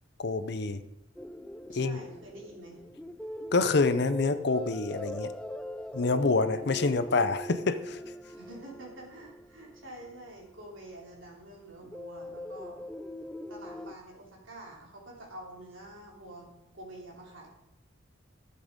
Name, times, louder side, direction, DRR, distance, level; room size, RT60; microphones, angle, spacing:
voice 1, 0.2-0.8 1.7-2.0 3.5-5.3 5.9-8.0, left 3 dB, 55° left, 12 dB, 0.6 m, -27 dB
sound 1, 1.2-10.8 11.8-14.0, left 1 dB, 5° left, 0.3 m, -42 dB
voice 2, 1.7-2.8 8.3-12.8 13.5-16.5 16.7-17.5, right 1 dB, 75° right, -1 dB, 3.1 m, -47 dB
12.5 x 7.5 x 5.2 m, 0.86 s
head